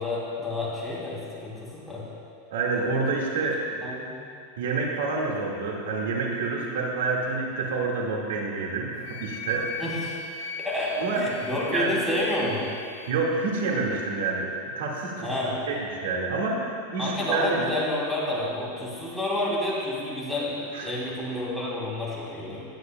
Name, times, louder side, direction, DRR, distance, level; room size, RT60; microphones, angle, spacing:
voice 1, 0.0-2.0 3.8-4.2 9.8-10.2 10.6-12.7 15.2-15.5 17.0-22.6, left 1 dB, ahead, -8 dB, 2.9 m, -29 dB
voice 2, 2.5-3.8 4.6-9.7 10.4-10.5 11.0-12.0 13.1-15.3 15.7-17.6 20.7-20.9, right 3 dB, 90° right, -2 dB, 1.9 m, -28 dB
Wind instrument woodwind instrument, 9.0-13.2, left 6 dB, 90° left, 1.3 m, -40 dB
19.0 x 9.6 x 2.3 m, 2.3 s
supercardioid pair, 155°, 0 cm